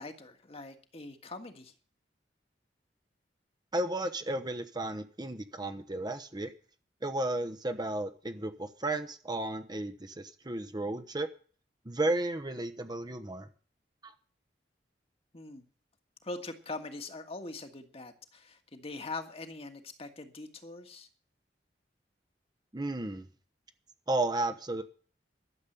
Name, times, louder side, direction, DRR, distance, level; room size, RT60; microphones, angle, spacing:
voice 1, 0.0-1.7 15.3-15.6 16.2-21.1, left 3 dB, 35° left, 6 dB, 1.6 m, -42 dB
voice 2, 3.7-6.5 7.0-11.3 11.8-13.5 14.0-14.1 22.7-23.3 24.1-24.8, right 2 dB, 25° right, 8 dB, 1.0 m, -33 dB
12.5 x 7.4 x 9.8 m, 0.41 s
head